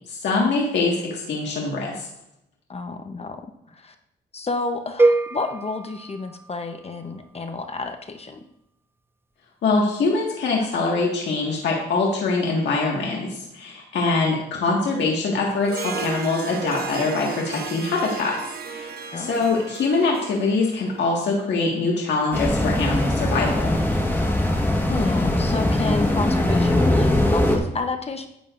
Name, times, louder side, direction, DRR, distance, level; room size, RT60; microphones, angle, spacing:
voice 1, 0.1-2.1 9.6-18.4 18.7-23.8, left 3 dB, 75° left, -2 dB, 1.8 m, -23 dB
voice 2, 2.7-3.4 3.7-3.9 4.3-8.4 14.1-14.4 19.1-19.4 24.9-28.3, left 3 dB, 35° left, 7 dB, 0.9 m, -30 dB
sound 1, 5.0-7.1, right 2 dB, 15° right, 0.4 m, -23 dB
Harp, 15.6-21.3, right 6 dB, 55° right, 0.9 m, -35 dB
sound 2, 22.3-27.6, left 1 dB, 10° left, 1.5 m, -21 dB
11.0 x 8.7 x 2.6 m, 0.82 s
cardioid pair, 95°, 18 cm